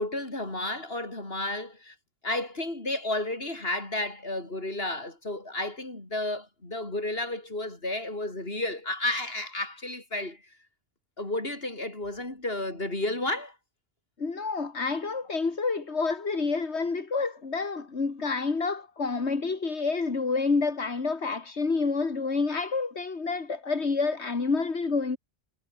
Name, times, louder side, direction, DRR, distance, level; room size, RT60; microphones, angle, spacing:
voice 1, 0.0-1.9 2.2-10.4 11.2-13.5, left 2 dB, 60° left, 5.6 m, -32 dB
voice 2, 14.2-25.2, left 4 dB, 80° left, 2.6 m, -28 dB
omnidirectional pair, 1.1 m